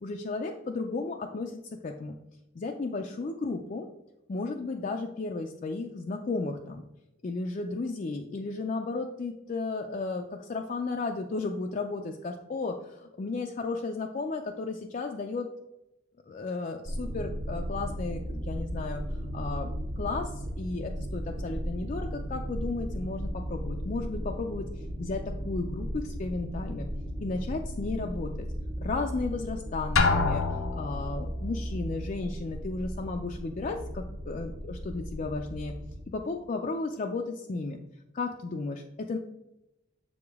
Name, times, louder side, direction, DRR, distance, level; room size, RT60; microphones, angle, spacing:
voice 1, 0.0-2.1 2.6-3.9 4.3-6.8 7.2-15.5 16.3-19.0 19.3-24.7 25.0-26.9 27.2-28.5 28.8-30.4 30.8-35.7 36.1-37.8 38.1-39.2, left 3 dB, 40° left, 3 dB, 0.4 m, -34 dB
sound 1, 16.9-36.0, equal, 40° right, 0.7 m, -36 dB
Drum, 30.0-31.2, left 4 dB, 90° left, 0.7 m, -25 dB
7.0 x 4.9 x 3.5 m, 0.91 s
head